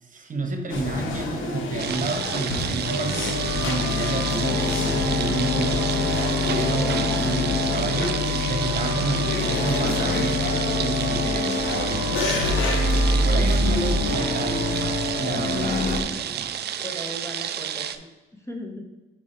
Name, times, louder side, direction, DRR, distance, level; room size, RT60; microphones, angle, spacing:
voice 1, 0.0-5.9 6.2-8.2 8.5-12.7 13.2-16.5, right 3 dB, 40° right, 4 dB, 1.1 m, -30 dB
sound 1, 0.7-16.0, left 2 dB, 80° left, 1.0 m, -25 dB
sound 2, 1.8-18.0, right 9 dB, 55° right, 0.4 m, -31 dB
voice 2, 13.4-13.9 16.8-17.9 18.3-18.8, left 1 dB, 15° left, 2 dB, 0.9 m, -37 dB
4.7 x 4.6 x 4.4 m, 1.2 s
cardioid pair, 90°, 20 cm